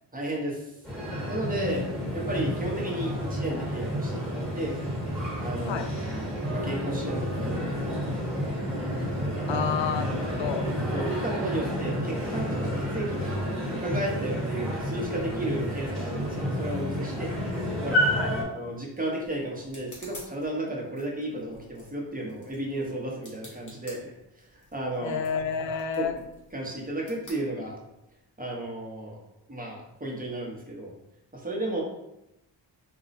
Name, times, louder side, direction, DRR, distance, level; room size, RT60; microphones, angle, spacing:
voice 1, 0.1-0.6 1.3-4.8 5.4-8.3 9.3-9.7 10.9-13.4 13.7-17.3 17.8-18.0 18.5-24.1 24.5-25.2 26.0-26.2 26.5-27.8 28.4-29.2 29.5-30.9 31.3-31.8, right 1 dB, 20° right, -2 dB, 0.8 m, -33 dB
sound 1, 0.8-18.4, equal, ahead, 1.2 m, -30 dB
voice 2, 9.5-10.7 18.1-18.3 25.0-26.2, left 7 dB, 90° left, 7 dB, 0.5 m, -30 dB
sound 2, 18.6-28.2, left 1 dB, 40° left, 1.3 m, -52 dB
4.1 x 2.2 x 4.0 m, 0.89 s
wide cardioid pair, 135°, 44 cm